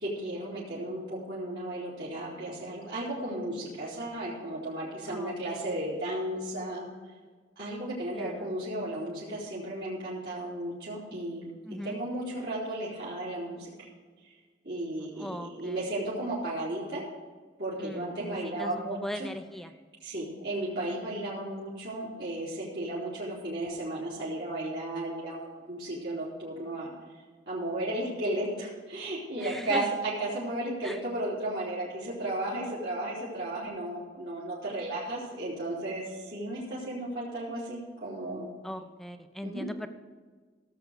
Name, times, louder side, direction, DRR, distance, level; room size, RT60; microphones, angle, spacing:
voice 1, 0.0-6.9 7.6-11.5 11.8-13.7 14.2-14.3 14.6-17.0 17.6-19.3 20.0-26.9 27.5-38.5 39.4-39.7, right 1 dB, 60° right, -9 dB, 3.6 m, -34 dB
voice 2, 5.1-5.7 8.1-8.5 11.6-12.0 15.2-15.9 17.8-19.7 29.4-29.9 30.8-31.0 38.6-39.9, equal, ahead, 8 dB, 0.7 m, -39 dB
16.5 x 7.8 x 5.0 m, 1.5 s
head